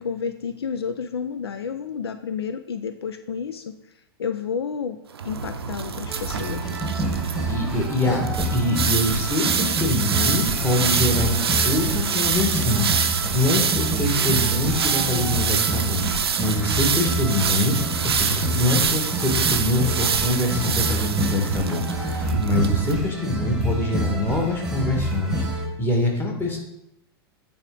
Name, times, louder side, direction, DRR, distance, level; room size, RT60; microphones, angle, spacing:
voice 1, 0.0-3.8 4.2-5.0 5.2-6.7, left 6 dB, 75° left, 10 dB, 0.4 m, -30 dB
sound 1, 5.1-22.9, right 6 dB, 75° right, 0.6 m, -25 dB
sound 2, 6.1-25.7, right 2 dB, 5° right, 1.3 m, -28 dB
voice 2, 7.5-8.2 8.5-17.8 18.0-25.4 25.8-26.6, left 2 dB, 15° left, 0 dB, 1.7 m, -24 dB
8.8 x 3.5 x 3.8 m, 0.83 s
figure-of-eight pair, 95°, 13 cm